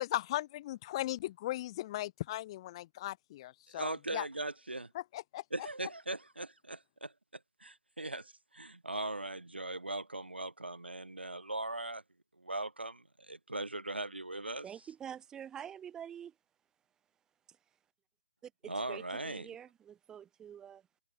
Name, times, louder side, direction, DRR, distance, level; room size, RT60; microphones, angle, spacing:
voice 1, 0.0-4.3 4.9-5.4, left 15 dB, 30° left, 1.2 m, -37 dB
voice 2, 3.7-4.9 5.5-7.1 7.6-12.0 12.4-14.7 18.7-19.5, right 2 dB, 85° right, 0.8 m, -39 dB
voice 3, 14.6-16.3 17.5-17.6 18.4-20.8, right 9 dB, 10° right, 3.5 m, -47 dB
figure-of-eight pair, 140°, 6 cm